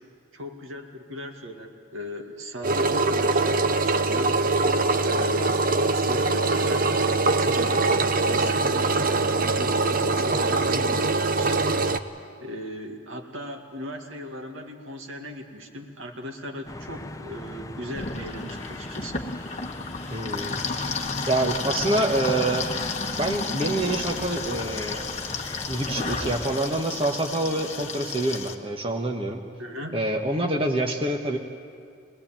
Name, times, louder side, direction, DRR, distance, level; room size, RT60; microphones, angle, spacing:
voice 1, 0.3-4.4 5.0-6.8 7.2-11.7 12.4-19.2 29.6-30.0, left 1 dB, 85° right, 3 dB, 2.2 m, -38 dB
Engine, 2.6-12.0, right 3 dB, 45° right, 0.7 m, -23 dB
sound 1, 16.7-26.6, left 2 dB, 15° left, 0.6 m, -39 dB
sound 2, 17.9-28.5, left 4 dB, 35° left, 1.3 m, -32 dB
voice 2, 20.1-20.9 21.3-22.7 23.2-25.0 25.7-29.4 29.9-31.4, right 2 dB, 30° right, 2 dB, 1.2 m, -26 dB
22.5 x 20.0 x 8.9 m, 2.3 s
head